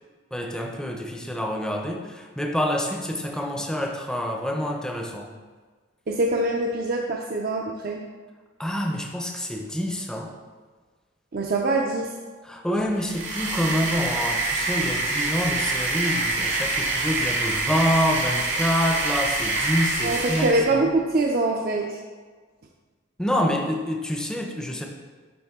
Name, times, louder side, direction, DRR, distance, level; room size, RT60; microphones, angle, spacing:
voice 1, 0.3-5.3 8.6-10.3 12.4-20.9 23.2-24.9, equal, 5° left, 1 dB, 0.6 m, -27 dB
voice 2, 6.1-8.0 11.3-12.1 20.0-22.0, right 2 dB, 50° right, 0 dB, 0.5 m, -24 dB
sound 1, 13.0-20.7, right 3 dB, 80° right, 1.8 m, -26 dB
10.0 x 3.4 x 3.6 m, 1.4 s
head